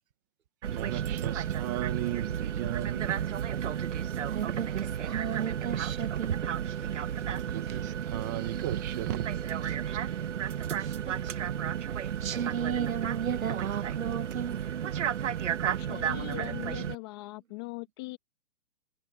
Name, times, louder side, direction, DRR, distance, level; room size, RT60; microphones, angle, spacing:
voice 1, 0.6-3.3 7.3-9.8, right 14 dB, 15° right, 1.0 m, -37 dB
sound 1, 0.6-17.0, right 9 dB, 60° right, 1.2 m, -32 dB
voice 2, 4.3-6.4 6.7-6.8 7.7-7.8 10.7-11.3 12.0-14.6, right 8 dB, 85° right, 1.4 m, -35 dB
voice 3, 15.8-18.2, left 25 dB, 20° left, 1.7 m, -40 dB
hypercardioid pair, 175°, 40 cm